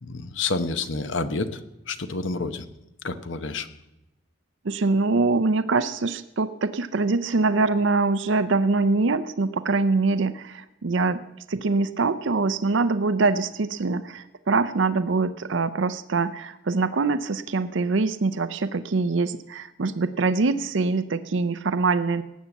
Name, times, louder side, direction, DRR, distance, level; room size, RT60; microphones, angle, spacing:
voice 1, 0.0-1.6 1.9-2.6 3.0-3.7, left 3 dB, 65° left, 10 dB, 1.0 m, -29 dB
voice 2, 4.6-11.2 11.5-22.2, right 3 dB, 65° right, 12 dB, 0.6 m, -24 dB
18.5 x 8.2 x 7.2 m, 0.93 s
head